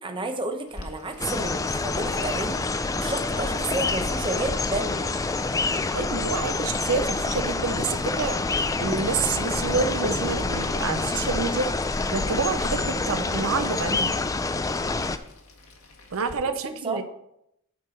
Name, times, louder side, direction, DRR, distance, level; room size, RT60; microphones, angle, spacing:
voice 1, 0.0-2.6 3.0-5.1 16.4-17.0, right 2 dB, 20° right, 5 dB, 0.9 m, -31 dB
Boiling, 0.7-16.3, left 2 dB, 70° left, 1.7 m, -50 dB
sound 1, 1.2-15.2, left 3 dB, 15° left, 0.3 m, -27 dB
voice 2, 5.9-11.7 12.1-14.1 16.1-17.0, right 4 dB, 65° right, 9 dB, 0.6 m, -28 dB
9.3 x 4.7 x 6.4 m, 0.78 s
head